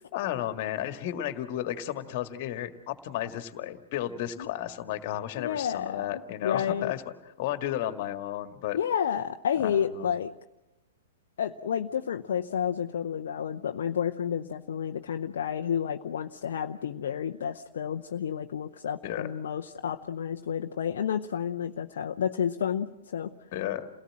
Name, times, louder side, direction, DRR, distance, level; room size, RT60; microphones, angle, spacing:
voice 1, 0.1-7.0 7.4-8.8 9.6-10.1 19.0-19.3 23.5-23.9, left 12 dB, 45° left, 9 dB, 1.8 m, -33 dB
voice 2, 5.4-6.9 8.7-10.3 11.4-23.3, left 8 dB, 60° left, 5 dB, 0.7 m, -30 dB
29.0 x 18.0 x 7.6 m, 1.0 s
figure-of-eight pair, 110°, 0 cm